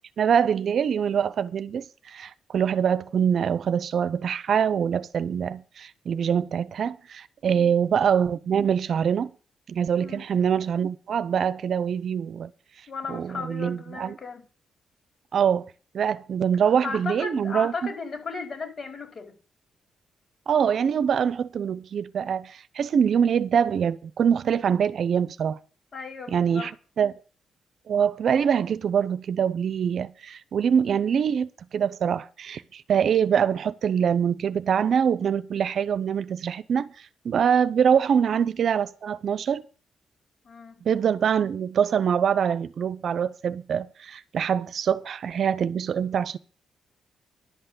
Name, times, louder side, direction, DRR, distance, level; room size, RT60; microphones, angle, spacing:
voice 1, 0.2-9.3 9.7-12.5 13.1-14.2 15.3-15.7 15.9-17.9 20.5-25.6 26.3-26.7 27.0-27.1 27.9-36.9 37.2-39.6 40.8-46.4, right 7 dB, 65° right, 0.7 m, -24 dB
voice 2, 12.9-14.4 16.6-19.3 25.9-26.7 37.9-38.0 40.4-40.8, left 4 dB, 50° left, 4.6 m, -36 dB
11.0 x 5.7 x 8.2 m
cardioid pair, 75°, 0 cm